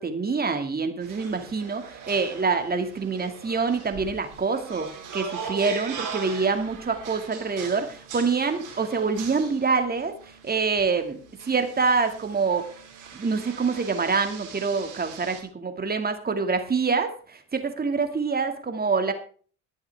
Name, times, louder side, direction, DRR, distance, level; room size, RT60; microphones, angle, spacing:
voice 1, 0.0-4.9 5.1-10.1 10.4-11.2 11.5-12.6 13.1-19.1, right 4 dB, 25° right, 6 dB, 2.3 m, -26 dB
sound 1, 1.0-15.4, right 6 dB, 55° right, 5.0 m, -40 dB
20.5 x 7.9 x 3.6 m, 0.43 s
hypercardioid pair, 60°, 37 cm